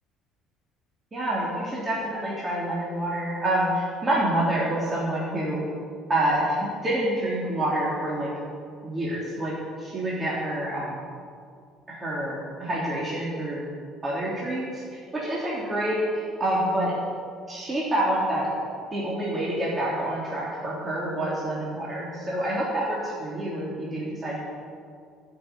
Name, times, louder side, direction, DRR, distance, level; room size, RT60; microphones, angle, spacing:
voice 1, 1.1-5.6 6.1-8.3 8.8-9.5 9.8-11.0 11.9-13.7 14.0-16.9 17.5-18.5 18.9-24.4, right 1 dB, 25° right, -6 dB, 3.3 m, -27 dB
12.5 x 7.3 x 8.4 m, 2.3 s
figure-of-eight pair, 55°, 0 cm